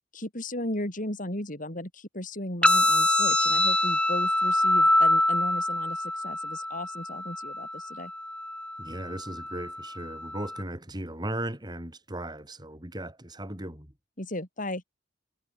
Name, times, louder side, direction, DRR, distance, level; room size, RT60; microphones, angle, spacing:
voice 1, 0.1-8.1 14.2-14.8, left 1 dB, 45° left, 6.7 m, -35 dB
sound 1, 2.6-10.6, left 1 dB, 5° left, 1.4 m, -25 dB
voice 2, 8.8-13.9, right 1 dB, 20° right, 5.0 m, -37 dB
head